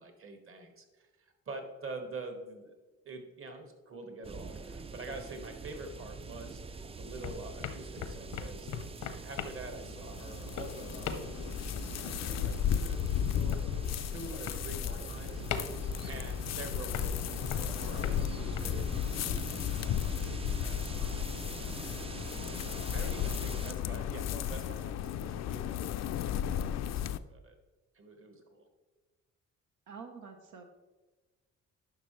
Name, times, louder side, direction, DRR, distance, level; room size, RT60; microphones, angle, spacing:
voice 1, 0.0-2.7 3.0-8.7 9.2-11.1 11.4-13.0 13.3-15.4 16.0-21.7 22.3-27.5 27.9-28.7, right 2 dB, 45° right, 5 dB, 1.5 m, -46 dB
sound 1, 4.2-23.7, right 4 dB, 20° right, 0.4 m, -44 dB
sound 2, 5.7-6.8 7.0-18.6, left 7 dB, 85° left, 0.8 m, -42 dB
sound 3, 9.5-27.2, left 9 dB, 60° left, 0.4 m, -35 dB
voice 2, 29.9-30.6, right 5 dB, 85° right, 3 dB, 0.9 m, -47 dB
10.5 x 5.9 x 3.2 m, 1.2 s
cardioid pair, 90°, 30 cm